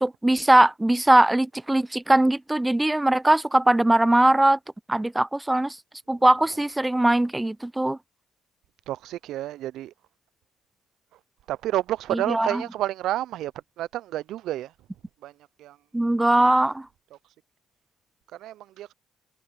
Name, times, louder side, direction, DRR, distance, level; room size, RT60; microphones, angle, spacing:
voice 1, 0.0-4.6 4.9-5.8 6.1-8.0 12.1-12.6 15.9-16.9, right 1 dB, 15° right, 0.8 m, -20 dB
voice 2, 8.9-9.9 11.5-14.7 15.2-15.3 15.6-15.8 17.1-17.2 18.3-18.9, right 14 dB, 70° right, 0.8 m, -30 dB
hypercardioid pair, 50°, 0 cm